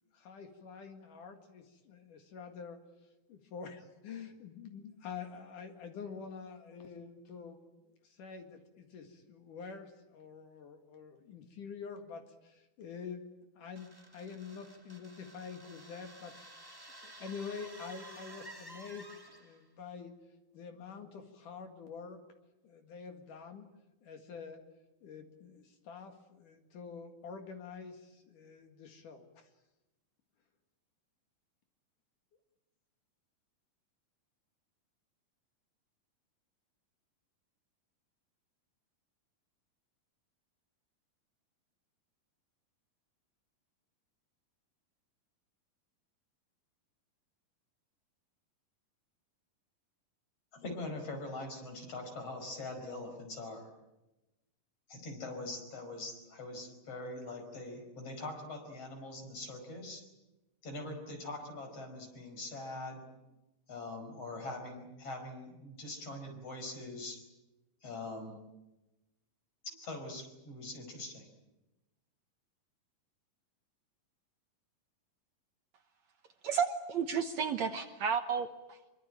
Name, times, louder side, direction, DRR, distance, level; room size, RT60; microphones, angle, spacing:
voice 1, 0.1-2.8 3.3-7.6 8.0-13.2 13.6-16.3 17.0-20.1 20.5-22.2 22.6-23.7 24.0-24.6 25.0-29.5, left 6 dB, 65° left, 5 dB, 3.3 m, -47 dB
sound 1, 13.7-19.7, right 1 dB, 20° right, 0.6 m, -53 dB
voice 2, 50.5-53.7 54.9-60.0 60.6-63.1 63.7-67.2 67.8-68.4 69.6-71.3, left 2 dB, 45° left, 5 dB, 5.9 m, -43 dB
voice 3, 76.4-78.9, right 6 dB, 65° right, 7 dB, 2.0 m, -32 dB
25.5 x 23.5 x 8.9 m, 1.0 s
omnidirectional pair, 4.0 m